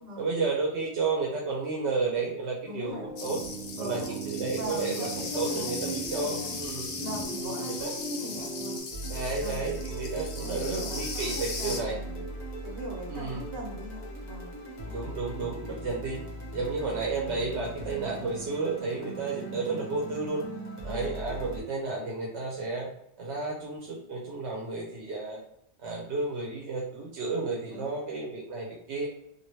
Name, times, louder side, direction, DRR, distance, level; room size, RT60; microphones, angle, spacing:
voice 1, 0.2-3.4 3.8-6.9 7.4-7.9 9.1-12.0 13.1-13.4 14.8-16.2 16.5-20.4 20.8-22.9 23.2-25.4 25.8-29.1, right 3 dB, 80° right, -3 dB, 1.0 m, -32 dB
voice 2, 2.6-3.1 3.8-4.1 4.6-6.5 7.0-8.8 9.4-9.7 10.4-12.2 12.6-14.5 20.8-21.0 27.7-28.0, equal, 60° right, -2 dB, 1.2 m, -40 dB
sound 1, 2.9-8.8, right 2 dB, 5° left, 0.9 m, -38 dB
sound 2, 3.2-11.8, left 4 dB, 85° left, 0.9 m, -38 dB
sound 3, 8.9-21.6, right 1 dB, 40° left, 1.1 m, -39 dB
2.9 x 2.6 x 2.9 m, 0.76 s
omnidirectional pair, 1.1 m